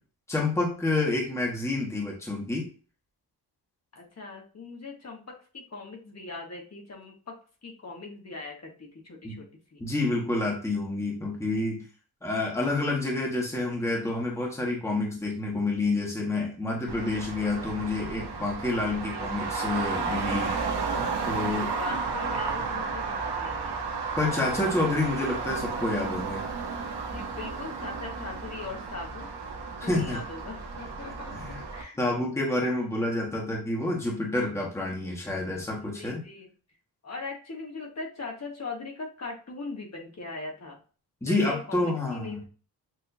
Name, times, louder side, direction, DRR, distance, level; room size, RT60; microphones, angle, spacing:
voice 1, 0.3-2.7 9.2-9.4 9.8-11.8 12.2-20.6 21.2-21.7 24.2-26.4 29.8-30.2 31.4-31.6 32.0-36.2 41.2-42.4, left 2 dB, 5° left, -2 dB, 1.2 m, -28 dB
voice 2, 3.9-7.4 7.6-9.4 9.7-9.8 18.9-19.3 21.2-23.8 27.1-29.3 29.8-32.0 35.8-36.5 37.0-40.8 41.3-42.5, left 3 dB, 40° left, 0 dB, 1.4 m, -40 dB
Traffic noise roadway noise, 16.9-31.8, right 4 dB, 90° right, 1.1 m, -33 dB
6.8 x 2.7 x 2.7 m, 0.37 s
wide cardioid pair, 135°, 40 cm